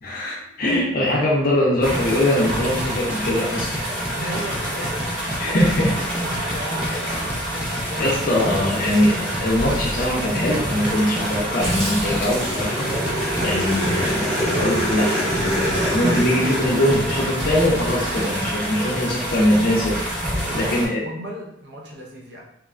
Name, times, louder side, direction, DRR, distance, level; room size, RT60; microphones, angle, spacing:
voice 1, 0.0-3.8 5.4-6.0 6.9-7.0 8.0-12.9 13.1-20.1 20.5-21.0, left 1 dB, 50° left, -3 dB, 0.5 m, -22 dB
sound 1, 1.8-20.9, right 1 dB, 85° right, 1.2 m, -27 dB
sound 2, 2.5-18.6, equal, 5° right, 0.4 m, -32 dB
voice 2, 4.1-5.3 6.4-7.2 7.8-8.1 20.2-22.4, equal, 65° right, -1 dB, 0.6 m, -36 dB
Growling, 11.6-18.3, equal, 35° right, 0.9 m, -28 dB
2.9 x 2.2 x 2.4 m, 0.73 s
head